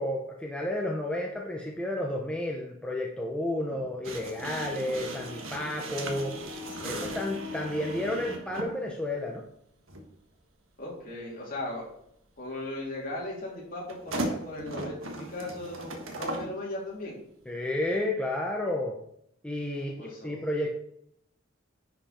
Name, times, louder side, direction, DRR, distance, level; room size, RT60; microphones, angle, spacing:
voice 1, 0.0-6.4 6.8-9.4 17.5-19.0 19.4-20.8, left 1 dB, 5° left, -1 dB, 0.8 m, -31 dB
sound 1, 4.0-8.8 9.9-10.0 13.9-16.5, right 1 dB, 80° right, 1.5 m, -37 dB
voice 2, 6.8-7.2 10.8-11.9 12.4-17.2 20.0-20.5, left 1 dB, 45° left, -3 dB, 3.1 m, -37 dB
10.5 x 5.2 x 4.4 m, 0.74 s
head